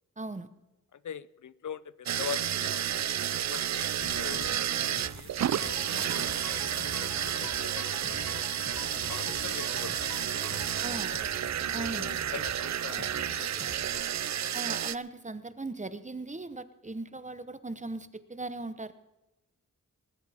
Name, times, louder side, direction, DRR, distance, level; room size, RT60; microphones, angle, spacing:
voice 1, 0.2-0.5 10.8-11.1 11.7-12.1 14.5-18.9, right 2 dB, 25° right, 12 dB, 0.9 m, -38 dB
voice 2, 0.9-2.9 3.5-5.9 6.1-6.3 6.8-8.5 9.1-9.9 10.2-10.3 11.1-11.4 11.7-13.9, left 8 dB, 65° left, 18 dB, 0.5 m, -43 dB
sound 1, 2.1-15.0, right 10 dB, 60° right, 0.4 m, -31 dB
Bass guitar, 4.0-13.9, left 2 dB, 40° left, 2.4 m, -48 dB
sound 2, 5.5-11.8, left 4 dB, 85° left, 1.6 m, -46 dB
20.0 x 14.5 x 3.6 m, 1.0 s
wide cardioid pair, 75°, 32 cm